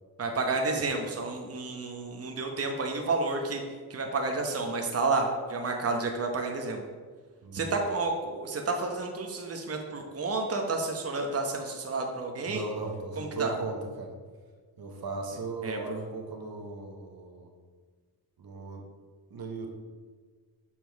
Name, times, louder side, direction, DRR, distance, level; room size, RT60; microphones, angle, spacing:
voice 1, 0.2-3.6 3.9-6.8 7.5-12.7 13.2-13.5 15.6-16.0, right 3 dB, 40° right, 2 dB, 1.0 m, -30 dB
voice 2, 7.4-7.7 12.5-14.1 14.8-17.5 18.4-18.8 19.3-19.7, right 4 dB, 65° right, 2 dB, 1.2 m, -37 dB
7.3 x 4.3 x 4.6 m, 1.5 s
cardioid pair, 60°, 39 cm